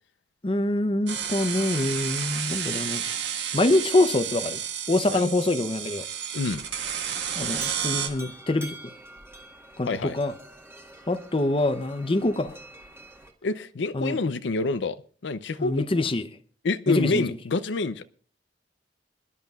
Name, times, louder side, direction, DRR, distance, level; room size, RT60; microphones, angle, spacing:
voice 1, 0.4-3.0 3.5-4.6 4.9-6.1 7.4-8.9 9.8-10.3 11.1-12.5 13.9-14.2 15.6-16.2 16.9-17.3, left 2 dB, 30° left, 0.7 m, -25 dB
sound 1, 1.1-8.1, right 8 dB, 80° right, 1.6 m, -31 dB
sound 2, 6.5-13.3, right 1 dB, 15° right, 1.4 m, -46 dB
voice 2, 13.4-15.0 15.2-16.0 16.6-18.0, left 3 dB, 85° left, 0.5 m, -27 dB
26.5 x 11.0 x 2.4 m
head